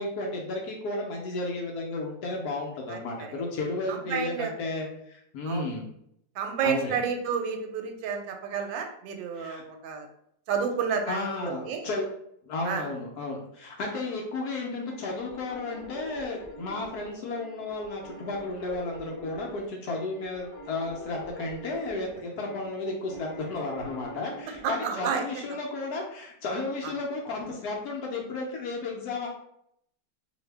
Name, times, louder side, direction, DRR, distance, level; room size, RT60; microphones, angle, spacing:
voice 1, 0.0-5.9 6.6-7.0 9.3-9.6 11.1-12.1 12.5-29.3, left 2 dB, 70° left, -1 dB, 1.0 m, -33 dB
voice 2, 3.9-4.5 5.4-5.7 6.4-10.1 10.5-11.9 12.6-12.9 24.6-25.3 26.8-26.9, right 6 dB, 85° right, 4 dB, 1.3 m, -30 dB
sound 1, 14.8-24.7, right 2 dB, 15° left, 1.0 m, -46 dB
2.7 x 2.6 x 3.2 m, 0.72 s
omnidirectional pair, 2.0 m